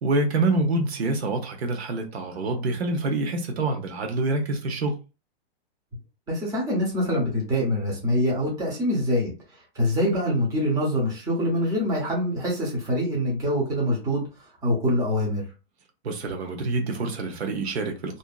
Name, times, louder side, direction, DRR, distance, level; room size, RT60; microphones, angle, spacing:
voice 1, 0.0-5.0 16.0-18.2, right 2 dB, 90° right, 1.0 m, -26 dB
voice 2, 6.3-9.3 9.7-14.2 14.6-15.4, equal, 10° right, 0.8 m, -24 dB
2.7 x 2.3 x 2.3 m
hypercardioid pair, 155°, 31 cm